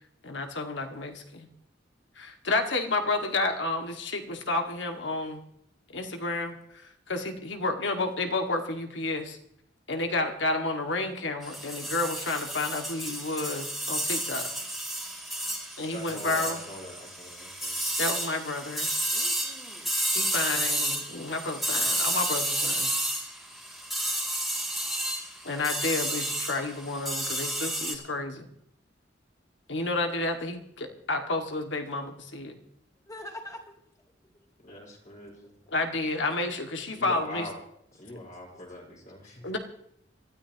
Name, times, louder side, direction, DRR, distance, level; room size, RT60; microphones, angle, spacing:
voice 1, 0.2-1.5 2.2-5.4 5.9-9.4 9.9-14.5 15.8-16.6 18.0-18.9 20.1-22.9 25.4-28.5 29.7-32.6 35.7-37.5 39.4-39.6, left 2 dB, 75° left, 5 dB, 2.0 m, -31 dB
sound 1, 11.4-27.9, right 1 dB, ahead, 2.5 m, -31 dB
voice 2, 15.9-17.9 34.6-35.6 36.9-37.5 38.0-39.5, left 1 dB, 45° left, -1 dB, 5.1 m, -42 dB
voice 3, 19.1-19.9 33.1-33.7 34.7-34.8 35.4-35.5 38.0-38.1 38.7-38.8 39.4-39.5, left 1 dB, 20° left, 0 dB, 3.1 m, -45 dB
25.5 x 13.5 x 3.0 m, 0.71 s
head